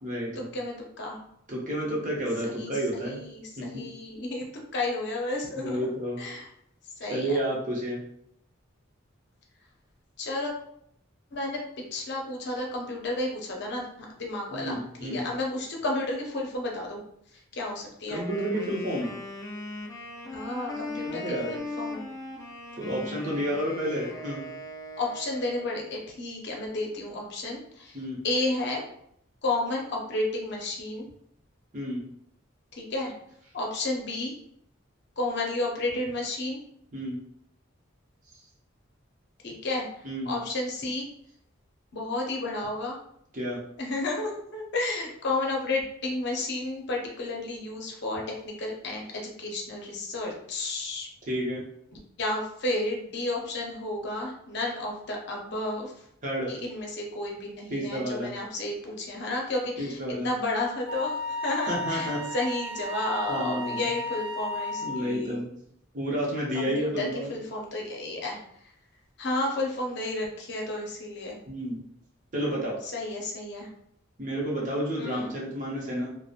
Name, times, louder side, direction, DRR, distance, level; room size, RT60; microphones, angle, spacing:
voice 1, 0.0-0.5 1.5-3.2 3.6-3.8 5.6-6.2 7.1-8.0 14.5-15.3 18.1-19.1 21.1-21.5 22.8-24.4 27.9-28.2 31.7-32.0 36.9-37.2 40.0-40.3 43.3-43.6 51.3-51.6 56.2-56.5 57.7-58.3 59.8-60.3 61.7-62.2 63.3-63.8 64.8-65.5 65.9-67.3 71.5-71.8 72.3-72.8 74.2-76.1, equal, 40° right, -4 dB, 0.7 m, -30 dB
voice 2, 0.5-1.3 2.4-4.4 4.7-5.9 6.2-6.5 7.0-7.4 10.2-10.5 11.3-11.6 11.9-13.8 14.2-17.0 17.3-18.2 20.3-22.1 25.0-28.0 28.2-28.8 29.4-31.1 32.7-33.1 33.5-34.4 35.2-36.6 39.4-39.9 40.3-41.1 41.9-43.0 43.8-51.1 52.2-56.0 56.5-65.4 66.5-68.7 69.2-71.4 72.8-73.7 75.0-75.4, left 2 dB, 60° left, -1 dB, 0.6 m, -32 dB
Wind instrument woodwind instrument, 18.0-25.8, left 2 dB, 15° left, 0.3 m, -39 dB
Wind instrument woodwind instrument 2, 60.9-65.1, left 1 dB, 75° right, 0.6 m, -34 dB
2.8 x 2.0 x 2.4 m, 0.73 s
head